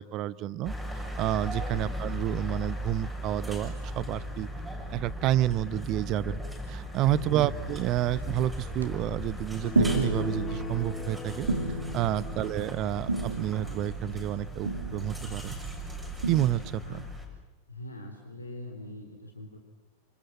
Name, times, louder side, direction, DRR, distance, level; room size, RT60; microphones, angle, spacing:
voice 1, 0.0-4.5 4.9-6.4 6.7-11.5 11.9-15.5 16.3-17.0, right 13 dB, 35° right, 19 dB, 0.9 m, -30 dB
sound 1, 0.6-17.2, equal, ahead, 7.5 m, -38 dB
voice 2, 7.1-7.7 12.2-12.5 16.8-17.1 17.7-19.6, left 1 dB, 85° left, 3 dB, 3.8 m, -43 dB
sound 2, 8.2-8.4 8.8-9.0 9.7-17.1, right 3 dB, 75° right, 2.3 m, -33 dB
sound 3, 9.6-13.2, left 5 dB, 20° left, 2.2 m, -41 dB
29.0 x 27.0 x 7.6 m, 1.1 s
figure-of-eight pair, 90°, 0 cm